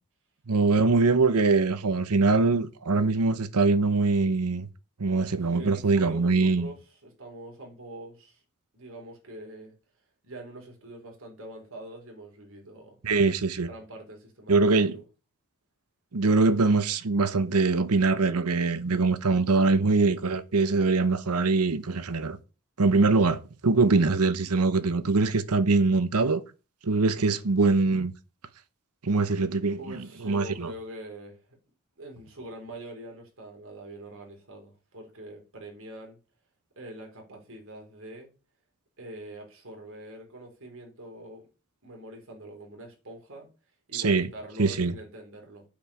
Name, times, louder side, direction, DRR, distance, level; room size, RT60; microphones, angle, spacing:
voice 1, 0.5-4.7 5.0-6.7 13.0-13.7 14.5-15.0 16.1-22.4 22.8-26.4 26.8-28.1 29.0-30.7 43.9-44.3 44.6-44.9, right 3 dB, 85° right, 0.9 m, -23 dB
voice 2, 5.5-8.4 8.7-9.7 10.2-13.0 13.7-15.0 29.8-31.4 32.0-36.2 36.8-38.3 39.0-41.5 41.8-43.5 43.9-45.7, right 1 dB, 60° right, 4.1 m, -44 dB
8.6 x 5.2 x 7.1 m
head